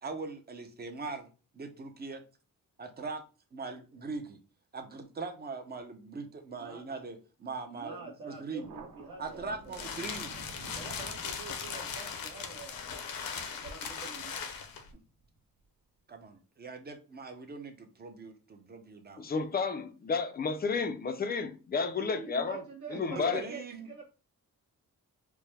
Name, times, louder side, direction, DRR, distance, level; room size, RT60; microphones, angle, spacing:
voice 1, 0.0-1.2 1.6-2.2 2.8-3.2 3.5-4.4 4.7-8.7 9.2-10.3 16.1-19.3 20.7-20.8 23.1-24.0, right 4 dB, 30° right, 0.6 m, -41 dB
voice 2, 6.5-6.8 7.7-9.8 10.7-14.3 22.0-24.0, right 4 dB, 60° right, 1.1 m, -47 dB
Thunder, 8.6-15.6, right 3 dB, 85° right, 0.9 m, -52 dB
sound 1, 9.2-14.9, left 6 dB, 75° left, 0.7 m, -39 dB
voice 3, 19.2-22.6 22.9-23.4, left 5 dB, 30° left, 0.4 m, -31 dB
4.6 x 2.1 x 3.3 m
wide cardioid pair, 145°, 34 cm